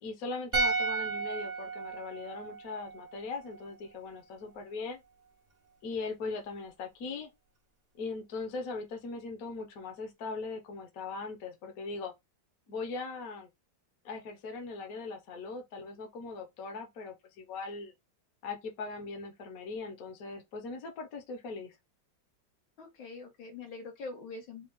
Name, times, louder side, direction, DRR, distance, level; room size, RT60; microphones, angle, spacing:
voice 1, 0.0-5.0 5.8-7.3 8.0-12.1 12.7-13.5 14.0-17.9 18.4-21.7, left 4 dB, 55° left, 1.2 m, -40 dB
sound 1, 0.5-3.7 4.0-4.2, right 3 dB, 45° right, 0.5 m, -34 dB
voice 2, 22.8-24.7, left 3 dB, 85° left, 2.0 m, -44 dB
4.3 x 2.3 x 3.6 m
omnidirectional pair, 2.1 m